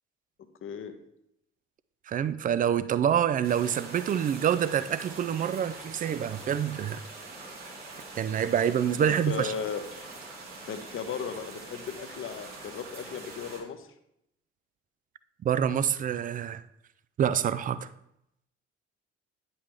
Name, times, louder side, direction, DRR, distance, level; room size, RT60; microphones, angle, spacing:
voice 1, 0.6-0.9 9.0-9.8 10.7-13.9, left 6 dB, 40° left, 0.8 m, -36 dB
voice 2, 2.1-7.0 8.2-9.5 15.4-16.6 17.2-17.9, right 9 dB, 25° right, 0.3 m, -26 dB
sound 1, 3.4-13.6, right 3 dB, 65° right, 1.6 m, -44 dB
9.4 x 5.5 x 3.0 m
figure-of-eight pair, 45°, 34 cm